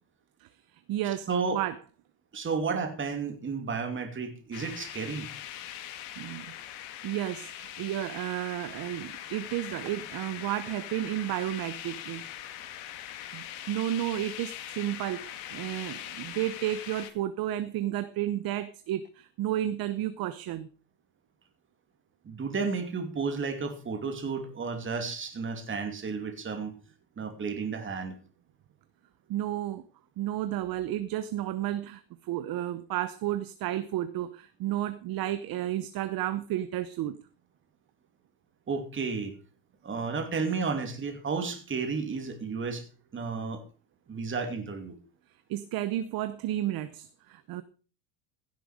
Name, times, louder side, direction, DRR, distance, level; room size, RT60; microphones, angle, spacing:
voice 1, 0.4-1.8 6.2-6.5 7.0-12.2 13.3-20.7 29.3-29.8 30.2-37.2 45.5-47.6, right 13 dB, 45° right, 0.9 m, -32 dB
voice 2, 1.3-1.6 2.3-5.3 22.2-26.7 27.2-28.1 38.7-39.3 39.8-42.8 43.1-43.6 44.1-44.9, right 5 dB, 25° right, 2.7 m, -32 dB
sound 1, 4.5-17.1, left 12 dB, 70° left, 2.1 m, -42 dB
16.0 x 7.8 x 5.0 m
cardioid pair, 135°, 50 cm